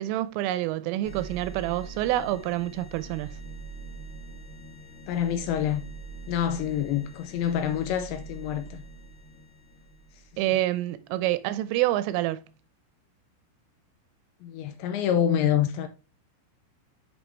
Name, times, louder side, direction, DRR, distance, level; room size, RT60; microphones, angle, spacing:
voice 1, 0.0-3.4 10.4-12.4, right 15 dB, 85° right, 3.0 m, -27 dB
sound 1, 1.0-10.4, right 3 dB, 35° left, 2.7 m, -43 dB
voice 2, 5.1-5.8 6.3-8.9 10.5-10.6 14.4-15.9, left 9 dB, 85° left, 2.6 m, -27 dB
8.2 x 5.6 x 3.1 m
omnidirectional pair, 5.9 m